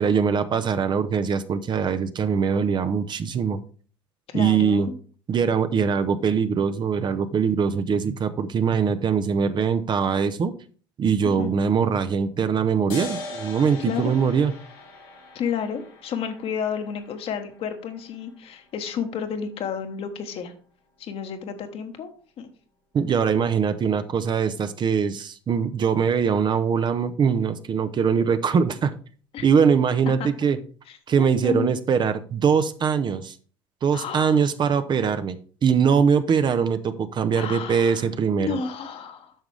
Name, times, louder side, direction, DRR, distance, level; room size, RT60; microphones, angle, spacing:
voice 1, 0.0-3.6 4.3-4.9 5.3-10.5 11.0-14.5 22.9-29.0 29.4-30.6 31.1-33.3 33.8-35.4 35.6-38.6, right 6 dB, 40° right, 11 dB, 0.8 m, -22 dB
voice 2, 4.3-4.9 11.4-11.5 13.9-14.2 15.3-20.5 21.0-22.1 22.4-22.5 29.3-29.4 30.2-30.3 30.9-31.7 33.9-34.4 37.3-38.0 38.4-39.3, left 6 dB, 50° left, 7 dB, 1.3 m, -31 dB
sound 1, 12.9-19.9, left 2 dB, 80° left, 3.5 m, -41 dB
9.0 x 6.1 x 3.4 m, 0.42 s
hypercardioid pair, 65°, 12 cm